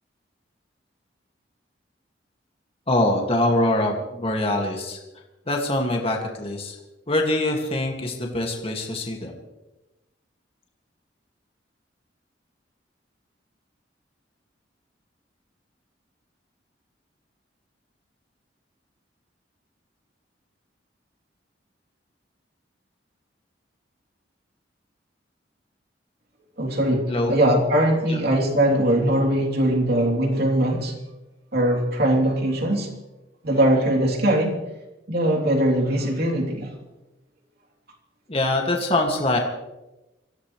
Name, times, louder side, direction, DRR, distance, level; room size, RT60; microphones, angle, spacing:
voice 1, 2.9-5.0 5.5-6.8 7.1-9.4 27.1-27.4 28.1-28.2 38.3-39.4, left 1 dB, 30° left, 1 dB, 2.1 m, -24 dB
voice 2, 26.6-30.9 31.5-32.9 33.4-34.5 35.1-36.7, right 1 dB, 60° right, 1 dB, 3.3 m, -21 dB
25.5 x 15.5 x 3.3 m, 1.0 s
head